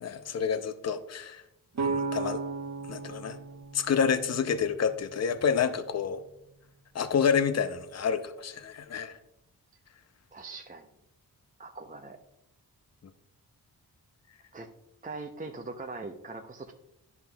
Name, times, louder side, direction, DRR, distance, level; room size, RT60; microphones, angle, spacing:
voice 1, 0.0-1.4 1.8-2.4 2.9-3.4 3.7-6.2 6.9-9.2, left 6 dB, 40° left, 10 dB, 0.7 m, -28 dB
sound 1, 1.8-5.6, right 4 dB, 50° right, 1.2 m, -35 dB
voice 2, 10.3-10.9 11.6-12.2 14.5-14.7 15.0-16.7, right 3 dB, 20° right, 4 dB, 0.7 m, -41 dB
10.5 x 5.6 x 2.3 m, 0.83 s
cardioid pair, 45°, 39 cm